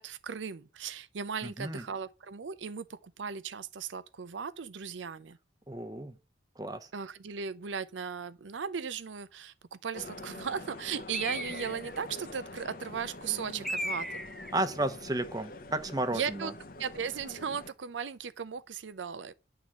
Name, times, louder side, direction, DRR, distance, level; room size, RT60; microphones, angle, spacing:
voice 1, 0.0-5.4 6.9-14.2 16.1-16.5 16.8-19.3, right 6 dB, 85° right, 0.6 m, -37 dB
voice 2, 1.4-1.8 5.7-6.1 6.6-6.9 14.5-16.5, right 2 dB, 20° right, 0.9 m, -33 dB
sound 1, 9.9-17.7, left 2 dB, 50° left, 0.7 m, -45 dB
Bird, 11.1-12.0 13.6-14.6, equal, ahead, 0.5 m, -36 dB
11.0 x 3.8 x 7.4 m
head